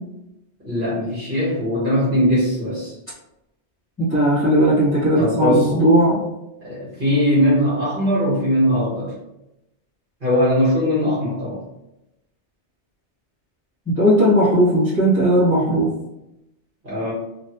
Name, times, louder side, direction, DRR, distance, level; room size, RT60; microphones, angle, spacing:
voice 1, 0.6-2.9 5.2-5.7 6.6-9.1 10.2-11.6 16.8-17.1, equal, 50° right, -9 dB, 1.4 m, -20 dB
voice 2, 4.0-6.2 14.0-15.9, right 1 dB, 15° left, -13 dB, 1.4 m, -17 dB
3.1 x 2.7 x 2.8 m, 0.90 s
omnidirectional pair, 1.2 m